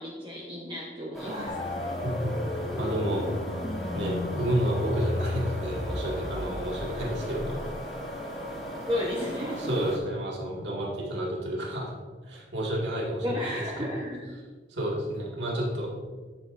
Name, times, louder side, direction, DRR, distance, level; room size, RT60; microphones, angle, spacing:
voice 1, 0.0-1.8 8.9-9.7 13.2-14.3, left 1 dB, 30° right, -4 dB, 1.1 m, -33 dB
sound 1, 1.1-10.0, equal, ahead, 1.8 m, -37 dB
sound 2, 1.5-8.1, left 2 dB, 20° left, 0.5 m, -35 dB
voice 2, 2.0-2.3 2.8-3.3 3.9-7.6 9.6-11.9 12.3-13.9 14.7-15.9, right 1 dB, 80° right, -3 dB, 2.0 m, -30 dB
11.0 x 8.1 x 2.6 m, 1.4 s
head